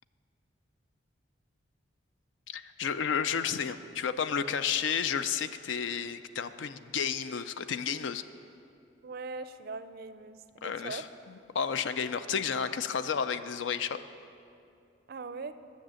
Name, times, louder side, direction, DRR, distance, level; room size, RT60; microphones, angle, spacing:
voice 1, 2.5-8.2 10.6-11.1 11.5-14.0, left 7 dB, 70° left, 12 dB, 0.4 m, -31 dB
voice 2, 9.0-11.1 15.1-15.5, right 4 dB, 50° right, 12 dB, 0.4 m, -40 dB
10.0 x 6.6 x 7.6 m, 2.6 s
head